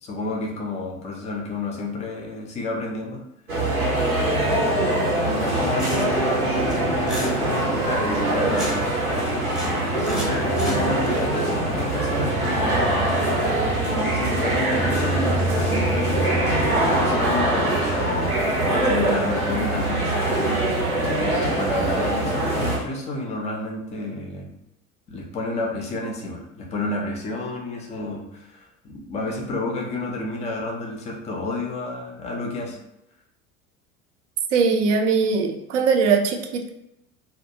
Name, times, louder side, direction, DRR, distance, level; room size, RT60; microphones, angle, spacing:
voice 1, 0.0-3.2 4.2-8.8 9.6-13.0 13.9-18.4 18.8-20.6 21.2-24.5 25.1-32.8, left 2 dB, 15° left, 1 dB, 0.4 m, -30 dB
sound 1, 3.5-22.8, right 1 dB, 90° right, 0.8 m, -23 dB
sound 2, 5.8-6.3 6.7-7.3 8.1-8.9 9.2-9.7 10.0-11.1, equal, ahead, 0.8 m, -35 dB
voice 2, 34.5-36.7, right 5 dB, 60° right, 4 dB, 0.5 m, -20 dB
2.2 x 2.2 x 2.7 m, 0.84 s
figure-of-eight pair, 70°, 42 cm